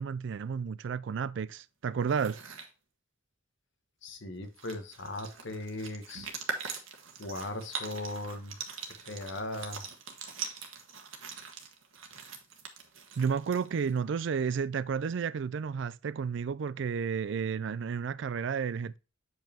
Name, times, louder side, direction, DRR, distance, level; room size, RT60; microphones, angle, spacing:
voice 1, 0.0-2.4 6.2-6.3 13.2-19.0, right 6 dB, 60° right, 0.4 m, -32 dB
sound 1, 2.0-2.7 4.1-4.2 4.4-14.0, right 5 dB, 80° right, 1.3 m, -42 dB
voice 2, 4.0-6.3 7.2-8.6 9.0-9.8, left 2 dB, 65° left, 1.2 m, -38 dB
7.8 x 5.3 x 2.8 m
head